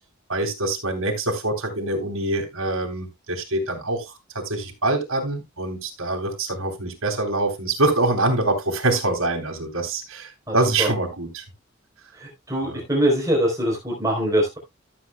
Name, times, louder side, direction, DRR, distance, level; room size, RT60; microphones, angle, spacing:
voice 1, 0.3-11.4 12.6-12.8, right 2 dB, 80° right, 3.3 m, -25 dB
voice 2, 10.5-10.9 12.2-14.6, right 1 dB, 15° right, 3.8 m, -23 dB
14.0 x 8.1 x 2.3 m
head